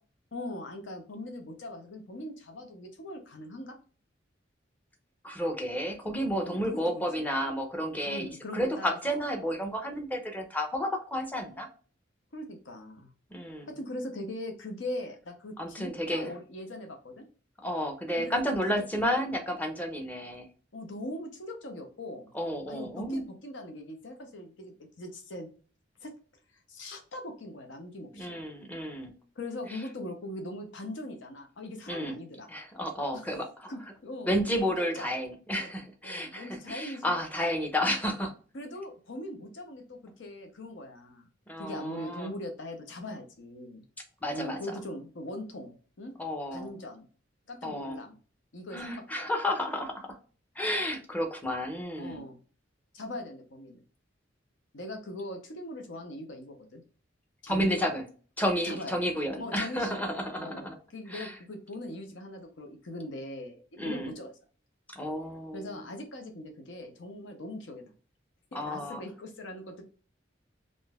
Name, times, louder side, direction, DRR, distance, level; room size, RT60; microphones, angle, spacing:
voice 1, 0.3-3.7 6.3-7.3 8.1-9.2 12.3-13.1 13.7-17.2 18.2-18.4 20.7-22.3 22.7-25.5 26.0-26.1 26.7-28.4 29.4-32.5 33.1-33.2 33.7-34.3 34.7-35.1 35.5-35.7 36.0-37.2 38.5-41.3 41.6-43.8 44.3-46.1 46.5-47.1 47.5-48.2 48.5-49.3 52.0-52.4 52.9-53.8 54.7-56.8 57.4-57.9 58.6-59.1 59.4-60.1 60.4-64.3 65.5-67.9 68.5-69.8, left 1 dB, 75° left, 4 dB, 0.8 m, -41 dB
voice 2, 5.2-11.7 13.3-13.7 15.6-16.3 17.6-20.5 22.3-23.3 28.1-29.1 29.7-29.8 31.9-32.2 32.5-33.7 34.3-38.3 41.5-42.3 44.2-44.8 46.2-46.7 47.6-48.0 48.7-50.2 50.6-52.2 57.5-58.0 58.4-60.8 61.1-61.3 63.8-64.1 64.9-65.6 68.5-69.0, equal, 10° left, 4 dB, 0.6 m, -31 dB
3.7 x 2.6 x 2.3 m, 0.40 s
head